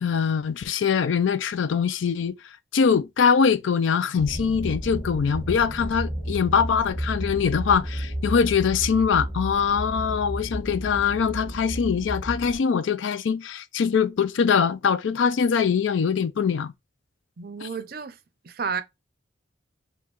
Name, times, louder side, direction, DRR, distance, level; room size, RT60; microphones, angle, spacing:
voice 1, 0.0-2.3 2.7-16.7 17.6-17.7, left 6 dB, 70° left, 0.4 m, -23 dB
sound 1, 4.2-12.5, equal, 10° left, 1.2 m, -32 dB
voice 2, 17.4-18.2 18.4-18.8, right 6 dB, 50° right, 0.5 m, -31 dB
5.1 x 2.3 x 2.9 m
head